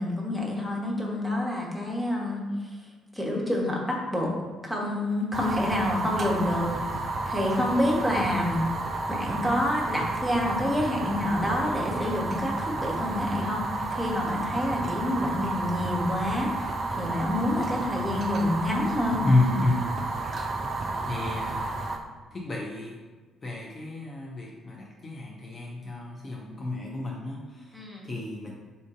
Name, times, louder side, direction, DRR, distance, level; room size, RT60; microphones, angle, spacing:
voice 1, 0.0-2.5 3.1-4.3 4.6-6.9 7.2-8.6 9.1-13.6 13.9-19.2 27.7-28.1, left 1 dB, ahead, -3 dB, 1.1 m, -28 dB
Fire, 5.3-22.0, right 2 dB, 40° right, 0.4 m, -31 dB
voice 2, 19.2-19.9 21.0-21.8 22.3-23.0 23.4-28.5, left 2 dB, 35° left, -2 dB, 0.6 m, -30 dB
4.0 x 2.5 x 3.6 m, 1.3 s
figure-of-eight pair, 45°, 0 cm